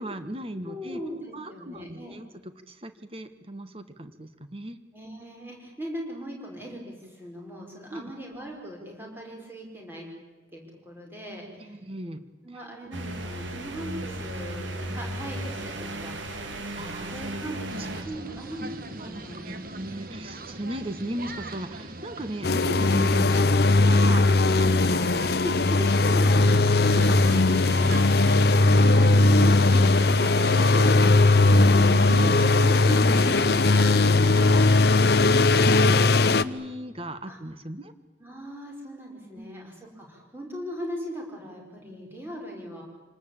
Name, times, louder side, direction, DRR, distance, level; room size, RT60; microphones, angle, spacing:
voice 1, 0.0-1.0 1.3-2.3 2.7-4.8 7.9-8.1 11.6-12.2 16.8-17.5 18.0-18.1 19.0-24.8 25.4-35.2 35.5-37.9 39.3-39.5, right 1 dB, 30° right, 10 dB, 1.4 m, -37 dB
voice 2, 0.6-2.1 4.9-10.1 10.5-11.8 12.4-16.3 17.1-17.7 18.0-19.4 28.5-28.9 37.3-37.4 38.2-42.8, equal, 10° right, 0 dB, 5.8 m, -40 dB
sound 1, 12.9-18.0, right 1 dB, 85° right, 2.9 m, -35 dB
sound 2, 17.7-35.7, right 2 dB, 50° right, 1.7 m, -40 dB
sound 3, 22.4-36.4, left 2 dB, 55° left, 0.7 m, -19 dB
26.0 x 19.5 x 8.9 m, 1.2 s
head